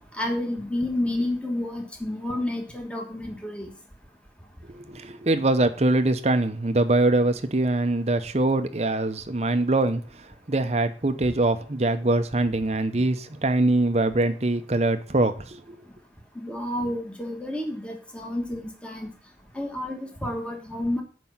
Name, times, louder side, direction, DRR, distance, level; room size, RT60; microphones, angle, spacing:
voice 1, 0.0-3.7 16.3-19.1 19.5-21.0, left 1 dB, 5° left, 2 dB, 1.4 m, -30 dB
voice 2, 4.7-10.0 10.5-15.8, right 2 dB, 35° right, 9 dB, 0.7 m, -23 dB
7.7 x 5.3 x 7.1 m, 0.41 s
head